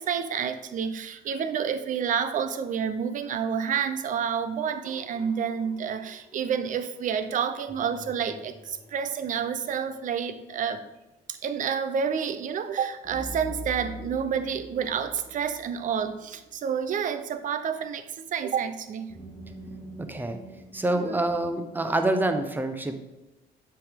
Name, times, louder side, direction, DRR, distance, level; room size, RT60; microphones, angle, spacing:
voice 1, 0.0-10.8 11.3-19.1 20.9-21.2, right 7 dB, 50° right, 11 dB, 0.7 m, -29 dB
Sci-Fi High Tones, 4.8-6.7 7.7-9.8 13.0-16.8 19.1-22.0, left 1 dB, 15° left, 1.3 m, -44 dB
voice 2, 20.0-20.4 20.7-23.0, right 1 dB, 10° right, 7 dB, 0.8 m, -26 dB
7.7 x 5.3 x 3.6 m, 1.0 s
cardioid pair, 110°, 17 cm